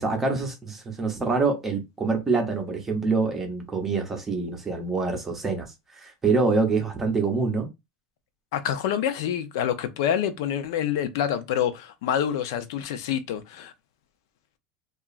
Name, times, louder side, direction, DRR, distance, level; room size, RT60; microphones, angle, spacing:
voice 1, 0.0-7.7, right 4 dB, 15° right, 0.6 m, -26 dB
voice 2, 8.5-13.7, left 9 dB, 75° left, 0.4 m, -27 dB
2.8 x 2.4 x 2.4 m
cardioid pair, 175°, 2 cm